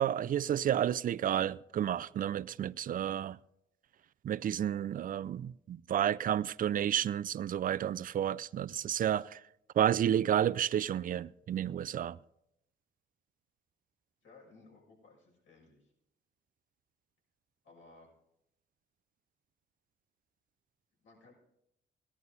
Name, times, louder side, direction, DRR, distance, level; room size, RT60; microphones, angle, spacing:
voice 1, 0.0-3.4 4.2-9.4 9.8-12.2, right 10 dB, 45° right, 0.4 m, -31 dB
voice 2, 14.2-15.9 17.6-18.1 21.0-21.3, left 3 dB, 70° left, 6.6 m, -59 dB
18.0 x 11.0 x 4.1 m
cardioid pair, 90°, 20 cm